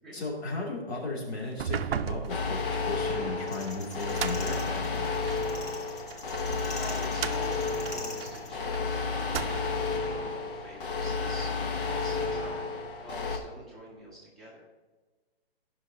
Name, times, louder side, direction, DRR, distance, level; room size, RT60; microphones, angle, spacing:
voice 1, 0.1-5.2, left 2 dB, 80° left, -3 dB, 3.1 m, -35 dB
sound 1, 1.5-5.5 6.1-8.8 9.2-9.9, right 8 dB, 70° right, 0.5 m, -37 dB
sound 2, 2.3-13.4, left 4 dB, 60° left, 1.3 m, -32 dB
sound 3, 3.5-8.5, left 2 dB, 15° left, 0.5 m, -44 dB
voice 2, 6.7-12.7 13.0-14.6, equal, ahead, -9 dB, 1.6 m, -46 dB
15.0 x 5.7 x 2.9 m, 1.3 s
hypercardioid pair, 165°, 32 cm